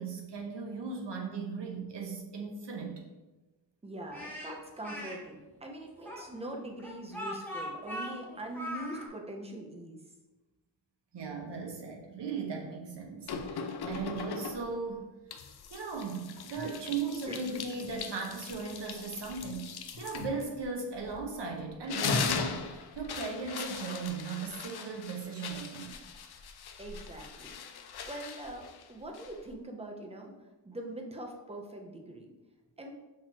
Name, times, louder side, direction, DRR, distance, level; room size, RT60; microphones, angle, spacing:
voice 1, 0.0-3.0 11.1-15.1 15.7-25.9, right 4 dB, 70° right, 0 dB, 1.0 m, -37 dB
voice 2, 3.8-10.0 16.6-16.8 17.3-17.5 17.9-18.0 26.8-27.6 28.0-30.3 30.6-32.3 32.8-32.9, right 1 dB, 15° right, 2 dB, 0.6 m, -42 dB
Speech, 4.1-5.2 6.0-9.1, equal, 5° left, 1.2 m, -40 dB
sound 1, 13.3-14.8 15.3-21.4 21.7-29.5, left 5 dB, 60° left, 0.5 m, -39 dB
5.9 x 3.0 x 2.8 m, 1.1 s
wide cardioid pair, 125°, 43 cm